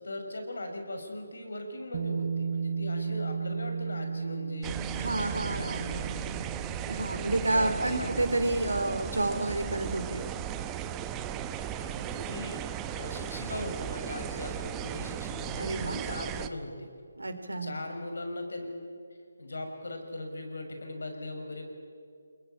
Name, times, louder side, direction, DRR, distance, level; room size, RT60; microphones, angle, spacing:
voice 1, 0.0-6.5 7.4-8.2 11.8-16.9 17.6-18.7 19.4-21.6, left 1 dB, 70° left, 4 dB, 5.9 m, -39 dB
Bass guitar, 1.9-8.2, right 5 dB, 40° right, 1.1 m, -35 dB
sound 1, 4.6-16.5, right 10 dB, 15° right, 1.0 m, -36 dB
voice 2, 4.9-6.0 6.9-10.3 15.5-16.0 17.2-17.7, right 2 dB, 80° right, 8 dB, 3.4 m, -30 dB
28.5 x 22.0 x 8.8 m, 2.2 s
figure-of-eight pair, 150°, 0 cm